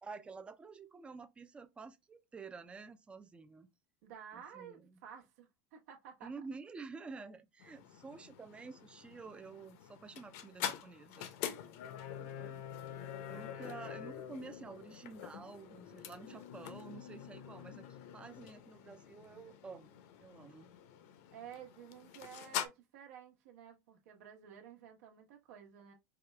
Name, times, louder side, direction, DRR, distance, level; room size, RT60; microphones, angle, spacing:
voice 1, 0.0-3.7 4.3-5.0 6.2-11.3 12.1-12.7 13.3-20.8, right 4 dB, 15° right, 0.4 m, -50 dB
voice 2, 4.0-6.3 13.3-13.5 13.9-14.0 21.3-25.9, right 8 dB, 80° right, 1.1 m, -53 dB
sound 1, 7.6-22.7, left 10 dB, 65° left, 0.7 m, -46 dB
4.9 x 2.3 x 3.2 m
supercardioid pair, 150°, 8 cm